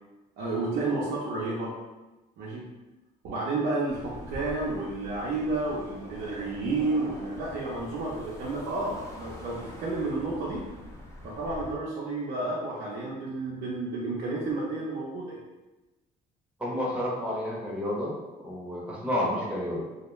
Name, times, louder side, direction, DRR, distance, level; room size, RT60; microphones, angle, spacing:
voice 1, 0.4-1.7 2.4-2.6 3.2-10.6 11.2-15.4, right 2 dB, 75° right, -6 dB, 0.6 m, -31 dB
sound 1, 3.9-11.8, left 1 dB, 15° left, 0.6 m, -45 dB
voice 2, 16.6-18.1 18.4-19.8, left 1 dB, 5° right, -5 dB, 0.9 m, -30 dB
2.4 x 2.1 x 3.0 m, 1.1 s
cardioid pair, 110°, 17 cm